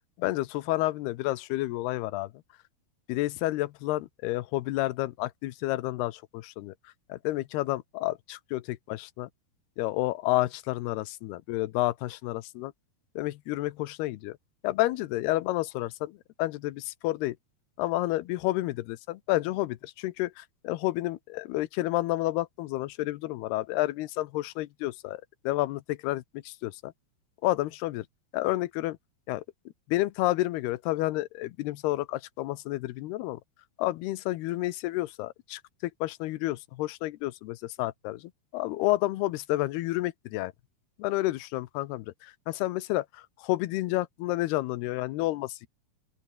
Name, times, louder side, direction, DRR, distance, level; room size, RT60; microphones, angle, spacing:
voice 1, 0.2-2.3 3.1-6.7 7.1-9.3 9.8-12.7 13.2-14.4 14.6-17.4 17.8-26.9 27.4-28.1 28.3-29.0 29.3-29.4 29.9-33.4 33.8-40.5 41.0-45.7, left 17 dB, 80° left, 2.9 m, -30 dB
open air
omnidirectional pair, 4.6 m